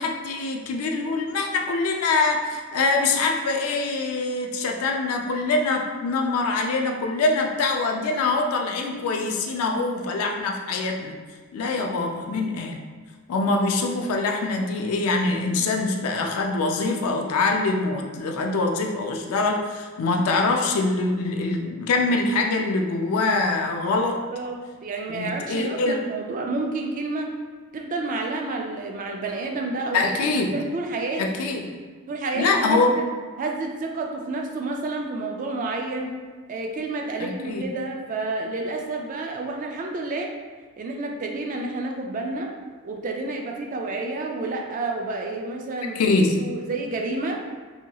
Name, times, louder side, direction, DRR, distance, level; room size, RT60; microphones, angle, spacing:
voice 1, 0.0-11.1 11.5-12.8 13.3-24.2 25.1-26.1 29.9-30.6 31.2-31.7 32.3-33.0 37.2-37.6 45.9-46.4, left 3 dB, 75° left, 3 dB, 0.4 m, -24 dB
voice 2, 24.3-27.3 27.7-30.1 30.5-31.2 32.1-33.0 33.4-36.1 36.5-40.3 40.8-42.5 42.8-47.4, right 2 dB, 40° right, 1 dB, 0.3 m, -30 dB
2.8 x 2.8 x 2.2 m, 1.5 s
head